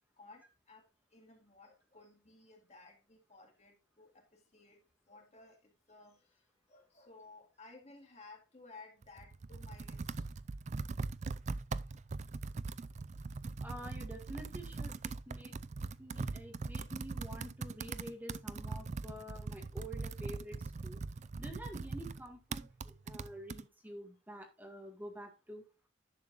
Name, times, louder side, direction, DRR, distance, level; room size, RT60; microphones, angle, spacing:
voice 1, 0.2-0.8 1.1-10.1, left 3 dB, 40° left, 2.2 m, -57 dB
Computer keyboard, 9.0-23.6, right 3 dB, 40° right, 0.4 m, -41 dB
voice 2, 13.6-15.6 16.0-21.0 21.4-25.7, equal, 10° right, 1.9 m, -48 dB
11.0 x 7.6 x 2.6 m
head